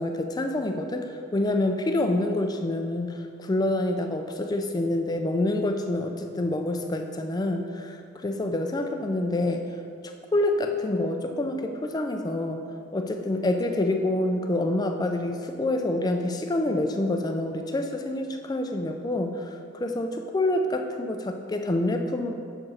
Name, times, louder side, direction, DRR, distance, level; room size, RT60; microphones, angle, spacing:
voice 1, 0.0-9.7 10.0-12.6 12.9-22.3, left 1 dB, 20° left, 5 dB, 0.3 m, -27 dB
6.3 x 4.7 x 4.2 m, 2.4 s
head